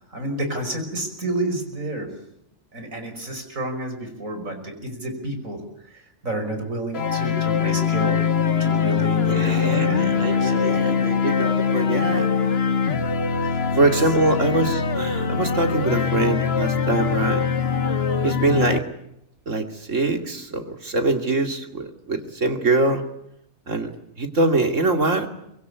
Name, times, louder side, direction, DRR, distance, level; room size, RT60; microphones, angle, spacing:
voice 1, 0.1-2.1 2.7-5.6 5.9-8.2 8.6-10.7 13.4-13.9, right 1 dB, 85° right, 6 dB, 5.9 m, -30 dB
sound 1, 6.9-18.8, left 6 dB, 50° left, 1.5 m, -22 dB
voice 2, 9.3-12.3 13.7-17.4 18.2-18.8 19.5-23.0 23.7-23.9 24.2-25.3, right 2 dB, 70° right, 6 dB, 3.0 m, -23 dB
25.0 x 21.5 x 9.5 m, 0.79 s
omnidirectional pair, 1.4 m